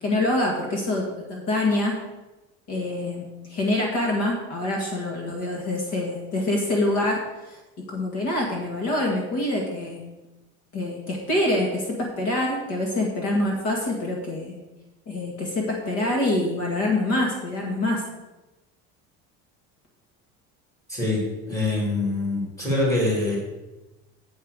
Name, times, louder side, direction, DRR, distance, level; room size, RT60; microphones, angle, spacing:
voice 1, 0.0-2.0 2.7-7.6 7.9-10.0 10.7-14.6 15.1-18.0, left 1 dB, 50° left, -1 dB, 2.0 m, -25 dB
voice 2, 20.9-23.4, left 2 dB, 10° left, -4 dB, 3.2 m, -24 dB
8.1 x 5.5 x 6.7 m, 1.1 s
cardioid pair, 165°, 30 cm